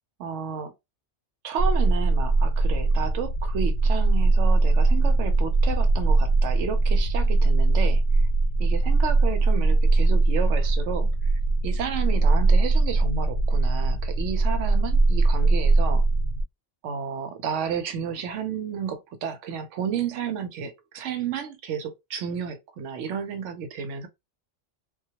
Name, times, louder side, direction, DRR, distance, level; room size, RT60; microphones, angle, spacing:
voice 1, 0.2-0.7 1.4-8.0 8.6-11.1 11.6-16.1 16.8-24.1, right 7 dB, 85° right, 0.9 m, -32 dB
sound 1, 1.6-16.4, right 3 dB, 90° left, 0.9 m, -21 dB
2.2 x 2.2 x 2.7 m
omnidirectional pair, 1.2 m